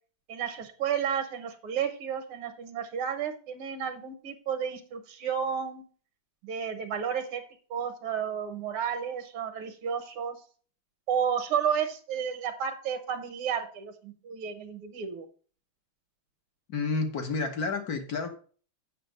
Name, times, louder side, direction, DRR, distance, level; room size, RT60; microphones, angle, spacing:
voice 1, 0.3-5.8 6.4-7.4 7.7-10.4 11.1-15.3, right 7 dB, 75° right, 1.9 m, -32 dB
voice 2, 16.7-18.3, left 4 dB, 50° left, 1.4 m, -30 dB
7.8 x 6.0 x 5.0 m
omnidirectional pair, 2.4 m